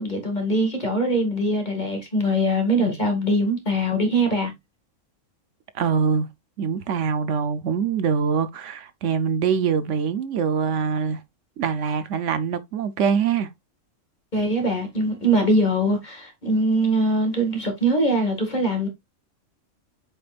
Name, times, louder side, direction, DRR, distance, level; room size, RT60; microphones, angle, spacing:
voice 1, 0.0-4.5 14.3-18.9, right 1 dB, 35° left, 2.1 m, -22 dB
voice 2, 5.7-6.3 6.6-11.2 11.6-13.5, right 6 dB, 70° right, 1.0 m, -24 dB
7.6 x 5.2 x 2.4 m
omnidirectional pair, 1.3 m